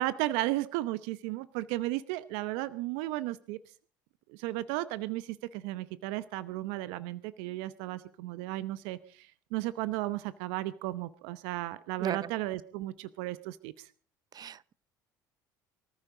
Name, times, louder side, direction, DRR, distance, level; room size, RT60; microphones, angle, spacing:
voice 1, 0.0-3.6 4.3-13.9, right 16 dB, 70° right, 0.8 m, -34 dB
voice 2, 12.0-12.3 14.3-14.7, right 8 dB, 40° right, 0.7 m, -36 dB
24.0 x 14.5 x 3.8 m
hypercardioid pair, 65°, 10 cm